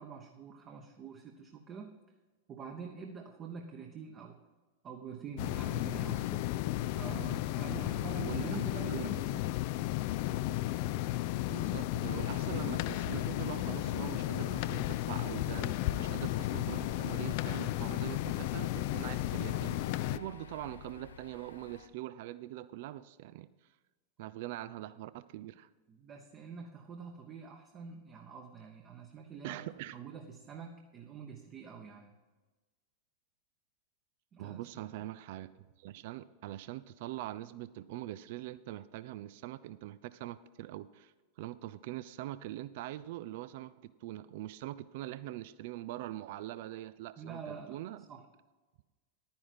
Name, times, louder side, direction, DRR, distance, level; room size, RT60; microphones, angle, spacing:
voice 1, 0.0-2.0 2.5-4.4 4.8-6.2 6.9-9.6 25.9-29.6 29.9-32.1 34.3-34.7 47.2-47.8 48.1-48.2, right 6 dB, 30° right, 3 dB, 1.0 m, -46 dB
sound 1, 5.4-20.2, left 16 dB, 45° left, 0.3 m, -34 dB
voice 2, 6.1-6.4 8.2-9.1 11.5-19.8 20.1-23.5 24.2-25.7 29.4-30.0 34.4-35.5 35.8-48.0, right 15 dB, 50° right, 16 dB, 0.4 m, -43 dB
sound 2, 12.0-21.9, left 5 dB, 70° left, 0.8 m, -49 dB
11.0 x 9.7 x 4.2 m, 1.2 s
figure-of-eight pair, 90°, 0 cm